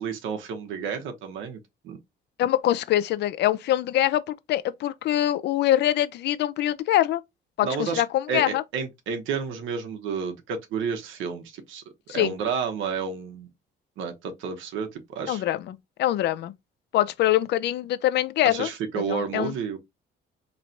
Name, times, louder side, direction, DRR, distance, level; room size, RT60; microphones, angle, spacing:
voice 1, 0.0-2.0 7.6-8.0 8.3-11.8 12.1-13.5 14.0-15.4 18.4-19.8, right 6 dB, 90° right, 0.9 m, -31 dB
voice 2, 2.4-7.2 7.6-8.6 12.1-12.3 15.3-16.5 16.9-18.7 19.1-19.5, left 13 dB, 60° left, 0.5 m, -24 dB
4.4 x 3.1 x 2.6 m
cardioid pair, 160°, 19 cm